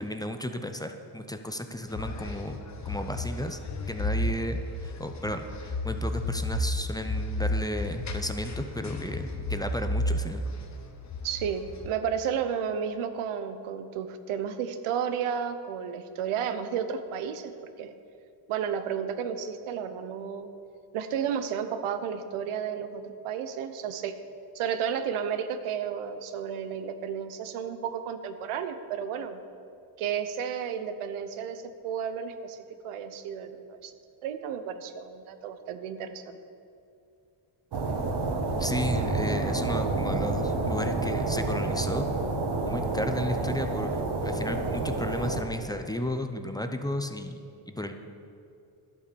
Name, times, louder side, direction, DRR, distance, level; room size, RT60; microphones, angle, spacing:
voice 1, 0.0-2.6 2.8-3.6 3.9-10.4 38.6-42.1 42.7-47.4 47.7-47.9, left 1 dB, 10° left, 6 dB, 0.6 m, -33 dB
sound 1, 1.9-11.9, left 1 dB, 35° left, 1.2 m, -32 dB
voice 2, 11.2-17.5 17.8-17.9 18.5-20.5 20.9-24.1 24.5-29.4 30.0-33.9 34.2-36.4, right 7 dB, 90° right, 10 dB, 1.0 m, -32 dB
sound 2, 37.7-45.4, right 3 dB, 55° right, 1.5 m, -29 dB
11.5 x 8.4 x 6.9 m, 2.5 s
cardioid pair, 110°, 48 cm